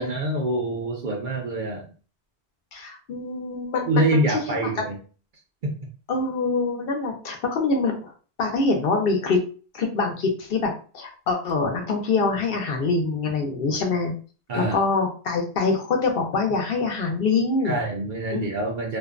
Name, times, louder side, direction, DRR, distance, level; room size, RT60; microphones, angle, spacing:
voice 1, 0.0-1.9 3.9-5.0 5.6-5.7 14.5-14.8 17.6-19.0, right 1 dB, 55° right, 1 dB, 0.6 m, -25 dB
voice 2, 2.7-3.9 4.3-4.7 6.1-8.1 8.4-9.4 9.7-14.1 14.5-17.8 18.3-18.5, left 4 dB, 65° left, 2 dB, 0.7 m, -24 dB
2.5 x 2.1 x 2.4 m, 0.38 s
omnidirectional pair, 1.1 m